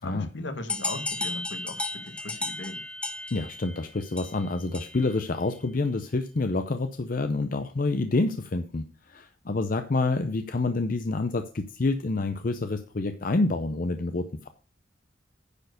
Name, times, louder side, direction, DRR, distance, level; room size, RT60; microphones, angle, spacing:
voice 1, 0.0-2.8, left 2 dB, 65° left, 1.3 m, -38 dB
sound 1, 0.7-5.2, left 2 dB, 5° left, 0.8 m, -34 dB
voice 2, 3.3-14.5, left 3 dB, 45° left, 0.6 m, -28 dB
9.8 x 4.5 x 6.4 m
head